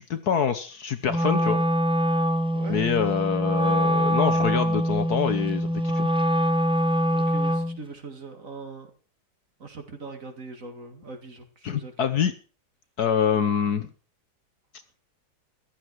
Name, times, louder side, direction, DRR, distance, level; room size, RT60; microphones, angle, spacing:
voice 1, 0.0-1.6 2.7-6.1 11.6-12.3 13.0-13.9, left 7 dB, 60° left, 10 dB, 1.4 m, -25 dB
Wind instrument woodwind instrument, 1.1-7.8, equal, 5° right, 0.4 m, -24 dB
voice 2, 2.5-2.8 7.1-8.9 9.6-12.1, right 3 dB, 40° right, 6 dB, 2.3 m, -41 dB
15.0 x 11.5 x 4.7 m, 0.38 s
omnidirectional pair, 2.1 m